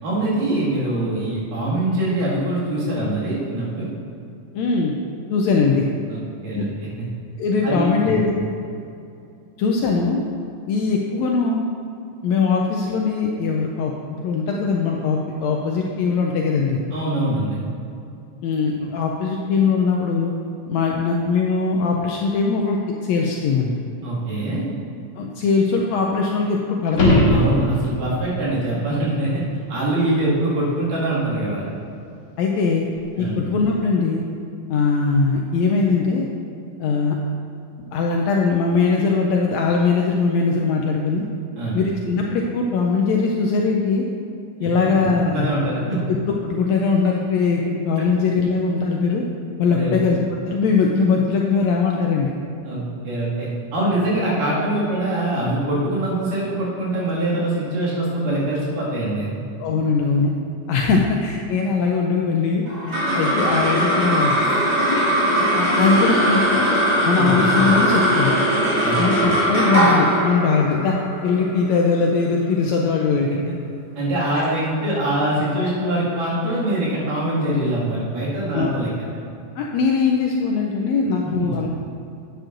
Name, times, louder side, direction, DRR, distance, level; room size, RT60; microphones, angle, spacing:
voice 1, 0.0-3.9 6.1-7.1 7.6-8.2 16.9-17.7 24.0-24.7 27.3-29.4 29.7-31.7 33.2-33.4 41.6-41.8 44.6-44.9 45.2-46.0 48.0-48.1 49.7-50.0 52.6-59.3 60.7-61.0 67.2-67.4 68.8-69.0 73.3-73.4 74.0-78.9 81.2-81.6, right 1 dB, 85° right, -7 dB, 3.7 m, -23 dB
voice 2, 4.5-4.9 5.3-5.8 6.5-6.6 7.4-8.3 9.6-10.2 10.7-11.7 12.2-13.9 14.2-16.8 18.4-20.3 20.7-23.7 25.2-27.2 32.4-32.9 33.2-34.2 34.7-36.3 36.8-37.2 37.9-41.3 41.7-44.1 44.6-45.5 46.1-46.2 46.4-49.2 49.6-50.2 50.5-52.3 59.6-60.3 60.7-64.3 64.9-65.0 65.4-66.7 67.0-68.3 69.0-71.0 71.2-73.4 78.5-78.7 79.6-81.7, left 4 dB, 80° left, 0 dB, 1.6 m, -20 dB
sound 1, 26.9-28.1 33.0-33.1, equal, 40° left, 1.3 m, -18 dB
sound 2, 62.7-73.3, right 1 dB, 50° right, 2.9 m, -20 dB
10.0 x 9.0 x 2.6 m, 2.6 s
omnidirectional pair, 3.7 m